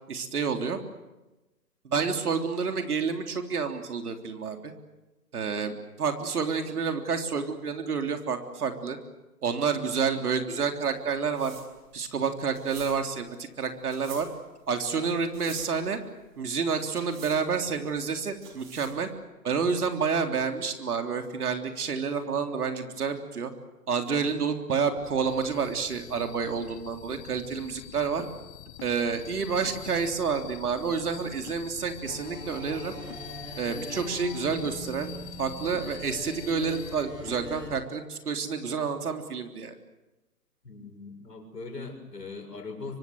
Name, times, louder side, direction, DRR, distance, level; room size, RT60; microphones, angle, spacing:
voice 1, 0.1-0.8 1.8-4.7 5.3-9.0 9.4-11.5 11.9-14.3 14.7-16.0 16.4-19.1 19.4-23.5 23.9-28.2 28.8-32.9 33.6-35.1 35.4-39.7, right 5 dB, 65° right, 5 dB, 3.6 m, -29 dB
sound 1, 10.7-19.1, right 7 dB, 50° right, 6.1 m, -49 dB
sound 2, 25.0-37.8, left 13 dB, 20° left, 1.2 m, -45 dB
sound 3, 32.0-37.7, right 1 dB, 10° right, 6.7 m, -43 dB
voice 2, 40.6-43.0, left 3 dB, 85° left, 4 dB, 6.5 m, -40 dB
25.5 x 24.5 x 7.9 m, 1.1 s
hypercardioid pair, 140°, 48 cm